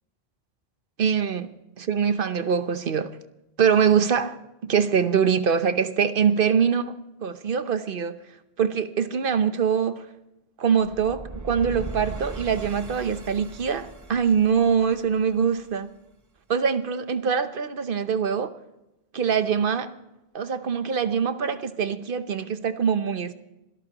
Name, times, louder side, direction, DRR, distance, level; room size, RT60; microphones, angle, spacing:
voice 1, 1.0-1.5 1.8-3.2 3.6-6.9 7.2-8.2 8.6-10.1 10.6-15.9 16.5-18.6 19.1-20.0 20.3-23.3, right 7 dB, 55° right, 11 dB, 1.0 m, -23 dB
sound 1, 10.8-15.8, right 3 dB, 25° right, 0.4 m, -39 dB
27.0 x 13.5 x 3.0 m, 0.93 s
omnidirectional pair, 1.1 m